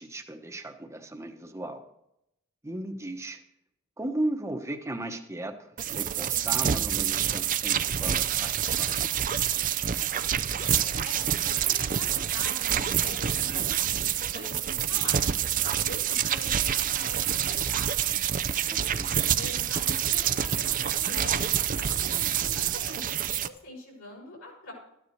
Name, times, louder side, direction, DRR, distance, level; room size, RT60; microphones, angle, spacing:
voice 1, 0.0-1.8 2.6-3.4 4.0-9.1 18.7-19.1, right 1 dB, 15° right, 5 dB, 1.0 m, -36 dB
sound 1, 5.8-23.5, right 10 dB, 40° right, 0.5 m, -27 dB
voice 2, 10.5-15.2 15.8-18.1 19.1-23.1 23.4-24.7, left 1 dB, 75° left, -2 dB, 5.7 m, -44 dB
14.0 x 9.9 x 4.6 m, 0.82 s
head